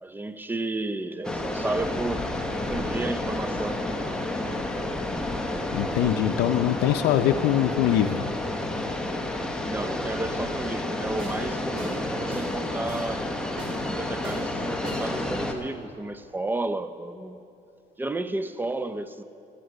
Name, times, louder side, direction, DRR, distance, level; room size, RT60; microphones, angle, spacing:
voice 1, 0.0-3.8 9.7-13.3 13.8-17.4 18.0-19.2, right 2 dB, 10° right, 0.5 m, -32 dB
sound 1, 1.2-15.5, left 1 dB, 5° left, 1.0 m, -30 dB
voice 2, 5.7-8.3, left 11 dB, 85° left, 0.5 m, -23 dB
sound 2, 11.2-11.4 11.8-12.0 12.3-12.5 12.9-13.1 13.6-13.8 14.2-14.4 14.8-15.1, right 1 dB, 35° right, 3.2 m, -38 dB
16.0 x 8.1 x 6.4 m
cardioid pair, 110°, 17 cm